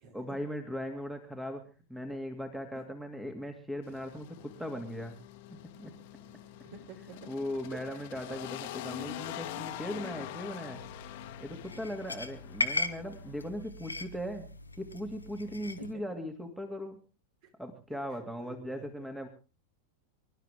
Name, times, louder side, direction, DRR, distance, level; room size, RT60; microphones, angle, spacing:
voice 1, 0.1-1.6 1.9-5.2 5.8-5.9 7.3-10.8 11.4-14.5 14.8-17.0 17.6-19.3, equal, 5° right, 6 dB, 2.4 m, -38 dB
sound 1, 3.8-13.5, left 13 dB, 50° left, 1.7 m, -44 dB
voice 2, 6.1-7.3 7.7-8.2 15.9-16.0 17.4-17.5 18.4-19.1, right 5 dB, 45° right, 6 dB, 4.3 m, -50 dB
sound 2, 10.7-15.9, left 2 dB, 80° left, 1.4 m, -38 dB
25.5 x 12.5 x 3.5 m, 0.34 s
figure-of-eight pair, 90°, 0 cm